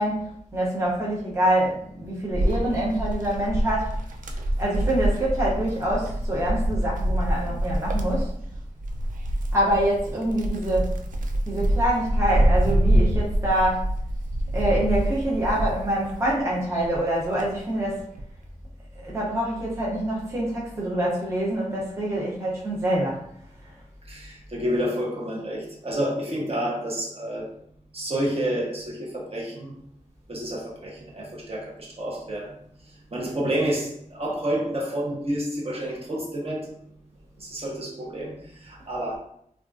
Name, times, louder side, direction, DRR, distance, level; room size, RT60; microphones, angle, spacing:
voice 1, 0.0-4.0 4.6-8.3 9.5-11.0 11.5-13.9 14.5-18.0 18.9-23.2, right 1 dB, 20° right, -5 dB, 0.7 m, -25 dB
Wind, 2.3-16.4 16.8-18.3, right 1 dB, 90° right, 0.4 m, -26 dB
voice 2, 24.1-27.5 27.9-29.7 30.3-32.5 33.1-36.7 37.4-39.2, right 1 dB, 50° right, -3 dB, 0.9 m, -29 dB
3.5 x 2.4 x 2.5 m, 0.69 s
wide cardioid pair, 95°, 13 cm